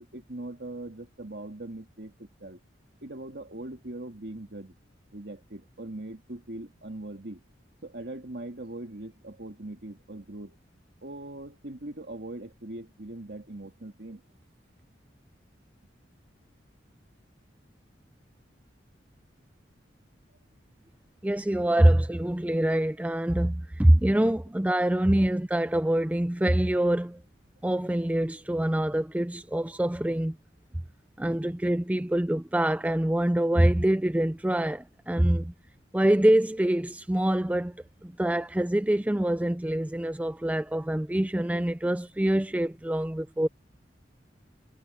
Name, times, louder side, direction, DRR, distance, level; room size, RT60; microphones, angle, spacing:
voice 1, 0.0-2.6 3.0-4.7 5.1-7.4 7.8-10.6 11.0-14.2 41.5-41.6, right 1 dB, 60° right, 2.3 m, -41 dB
voice 2, 21.2-27.2 27.6-30.4 31.2-35.5 35.9-43.5, right 1 dB, 10° right, 0.4 m, -25 dB
head